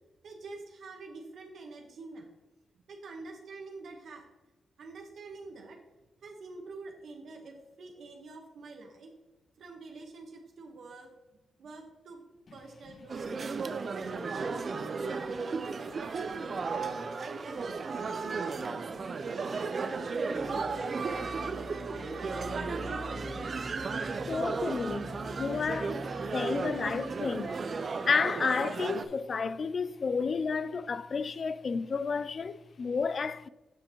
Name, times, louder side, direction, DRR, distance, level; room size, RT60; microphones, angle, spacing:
voice 1, 0.2-2.3 2.7-4.2 4.8-5.8 6.2-9.1 9.6-11.1 11.6-12.2 12.5-13.3 13.9-16.8 17.2-19.2 19.7-19.9 20.3-23.4 26.2-26.4 29.1-29.2, right 3 dB, 75° right, 1.2 m, -46 dB
sound 1, 13.1-29.0, right 4 dB, 50° right, 0.5 m, -35 dB
sound 2, 20.3-28.9, left 1 dB, 25° left, 0.9 m, -46 dB
voice 2, 24.3-26.0 26.3-33.5, left 5 dB, 50° left, 0.3 m, -31 dB
9.1 x 5.2 x 3.0 m
cardioid pair, 70°, 0 cm